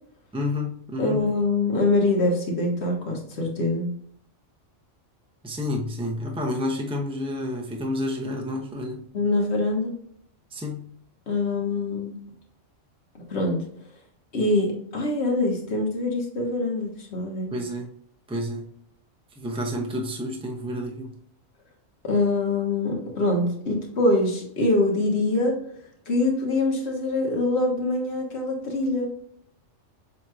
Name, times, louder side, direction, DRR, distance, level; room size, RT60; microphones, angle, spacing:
voice 1, 0.3-1.2 5.4-9.0 10.5-10.8 17.5-17.9 18.3-18.7 19.4-21.2, left 1 dB, 5° right, 0 dB, 0.5 m, -30 dB
voice 2, 1.0-3.9 9.1-9.9 11.3-12.2 13.3-13.7 14.3-17.5 22.0-25.6 26.1-29.1, left 2 dB, 60° left, 0 dB, 1.4 m, -24 dB
7.0 x 3.0 x 2.3 m, 0.66 s
omnidirectional pair, 1.3 m